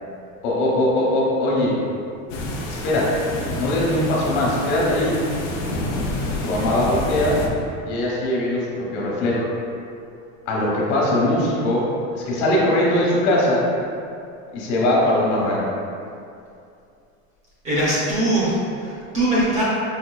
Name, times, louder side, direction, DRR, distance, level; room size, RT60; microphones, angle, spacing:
voice 1, 0.4-1.7 2.6-3.1 3.6-5.2 6.4-7.4 7.8-9.5 10.5-11.9 12.1-13.6 14.5-15.7, left 1 dB, 60° left, -4 dB, 1.0 m, -21 dB
sound 1, 2.3-7.5, left 1 dB, 35° left, 0.5 m, -28 dB
voice 2, 17.6-19.6, right 1 dB, 20° right, -7 dB, 0.5 m, -21 dB
5.3 x 2.7 x 2.3 m, 2.5 s
supercardioid pair, 160°, 38 cm